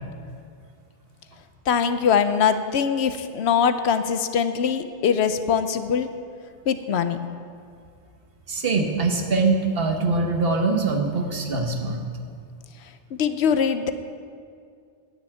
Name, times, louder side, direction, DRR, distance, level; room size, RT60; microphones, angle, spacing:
voice 1, 1.7-6.1 6.7-7.2 13.2-13.9, left 7 dB, 75° left, 10 dB, 0.9 m, -22 dB
voice 2, 8.5-12.0, right 3 dB, 60° right, 3 dB, 1.3 m, -23 dB
9.7 x 7.1 x 9.0 m, 2.2 s
omnidirectional pair, 1.1 m